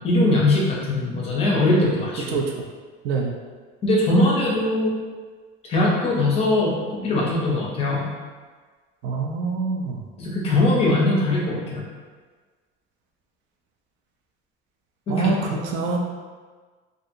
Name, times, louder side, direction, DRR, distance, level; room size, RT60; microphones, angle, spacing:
voice 1, 0.0-2.4 3.8-4.9 5.7-8.1 10.2-11.8 15.1-15.3, left 2 dB, 30° left, -4 dB, 0.5 m, -21 dB
voice 2, 9.0-10.0 15.1-16.0, right 4 dB, 65° right, 1 dB, 0.4 m, -25 dB
2.7 x 2.5 x 2.5 m, 1.4 s
cardioid pair, 170°, 21 cm